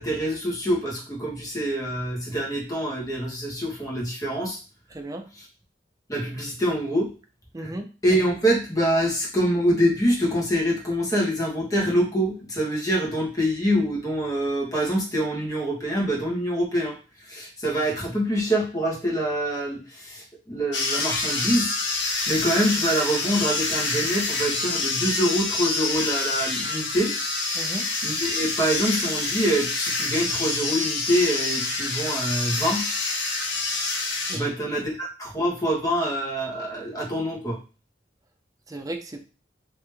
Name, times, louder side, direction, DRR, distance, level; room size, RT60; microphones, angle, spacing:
voice 1, 0.0-4.6 5.3-5.5 6.1-7.1 7.6-7.7 8.0-21.7 22.3-27.1 28.0-32.9 34.3-37.6, equal, 20° left, -4 dB, 1.3 m, -25 dB
voice 2, 4.9-5.3 7.5-7.9 27.6-27.9 34.3-34.8 38.7-39.2, right 1 dB, 20° right, 4 dB, 0.5 m, -35 dB
sound 1, 20.7-34.4, left 3 dB, 65° left, 0.8 m, -27 dB
3.3 x 2.9 x 3.4 m, 0.34 s
head